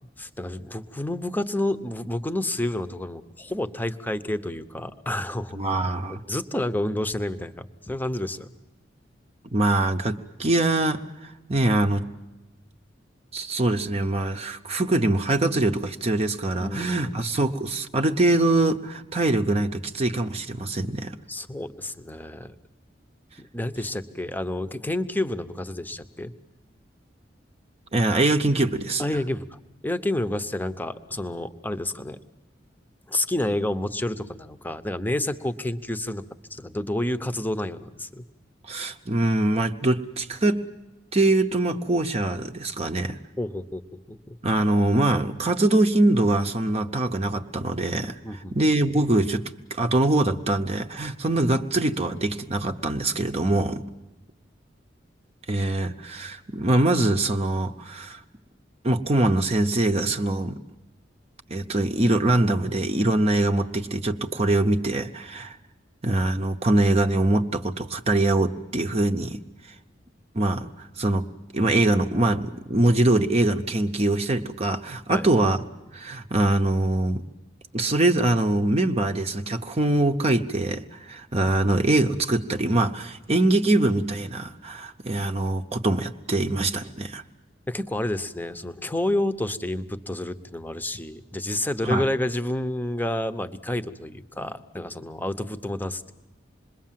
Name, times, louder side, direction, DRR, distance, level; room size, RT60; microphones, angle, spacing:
voice 1, 0.2-5.6 6.1-8.5 16.6-17.1 21.3-22.5 23.4-26.3 29.0-32.2 33.1-36.2 36.5-38.2 43.4-44.4 48.2-48.5 75.1-75.3 87.7-96.1, left 1 dB, 10° left, 10 dB, 0.9 m, -29 dB
voice 2, 5.6-6.2 9.5-12.0 13.3-21.2 27.9-29.0 38.6-40.6 41.1-43.2 44.4-49.4 49.7-53.9 55.5-58.2 58.8-60.6 61.5-65.6 66.0-69.4 70.3-71.2 71.5-75.7 75.9-77.2 77.7-87.2 91.8-92.0, right 2 dB, 35° right, 5 dB, 0.8 m, -23 dB
27.0 x 21.5 x 7.5 m, 1.0 s
head